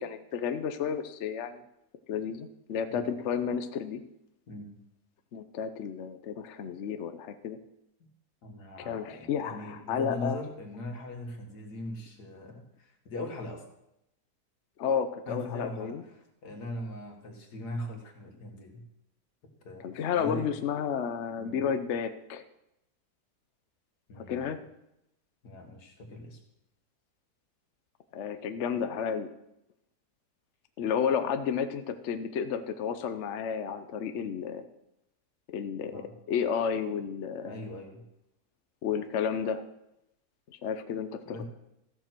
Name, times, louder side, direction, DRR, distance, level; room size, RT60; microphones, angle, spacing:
voice 1, 0.0-1.6 2.1-4.0 5.3-7.6 8.8-10.4 14.8-16.0 19.8-22.4 24.3-24.6 28.1-29.3 30.8-34.7 35.5-36.0 36.3-37.6 38.8-39.6 40.6-41.4, left 7 dB, 55° left, 9 dB, 0.9 m, -32 dB
voice 2, 8.4-13.6 15.3-18.8 19.6-20.5 21.4-21.7 24.1-24.5 25.4-26.4 35.9-36.1 37.4-38.0 41.3-41.4, left 1 dB, 75° left, 3 dB, 2.3 m, -40 dB
14.5 x 6.8 x 6.0 m, 0.85 s
omnidirectional pair, 1.7 m